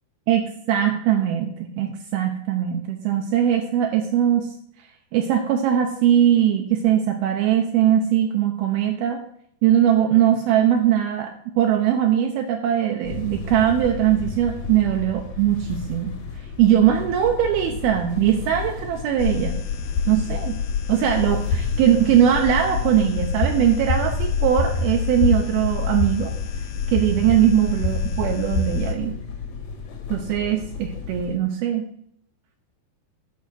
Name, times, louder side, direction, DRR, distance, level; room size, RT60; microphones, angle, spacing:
voice 1, 0.3-4.5 5.1-9.2 9.6-11.3 11.6-16.1 16.6-19.6 20.1-20.6 20.9-26.3 26.9-29.2 30.1-31.9, right 10 dB, 75° right, 3 dB, 2.6 m, -20 dB
sound 1, 13.0-31.4, left 5 dB, 60° left, 2.0 m, -35 dB
sound 2, 19.2-28.9, left 4 dB, 80° left, 3.1 m, -26 dB
10.5 x 5.6 x 6.2 m, 0.68 s
omnidirectional pair, 4.6 m